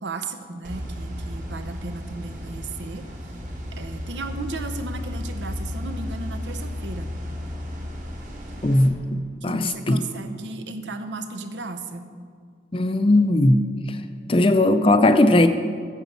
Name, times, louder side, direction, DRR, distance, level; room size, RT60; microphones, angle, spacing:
voice 1, 0.0-3.0 3.8-7.1 9.4-12.1, right 3 dB, 80° right, 8 dB, 0.8 m, -35 dB
sound 1, 0.6-8.9, left 1 dB, 45° right, 1.4 m, -33 dB
voice 2, 8.6-10.0 12.7-14.0 14.3-15.5, left 1 dB, 30° left, 9 dB, 0.5 m, -18 dB
9.1 x 7.3 x 6.9 m, 2.1 s
head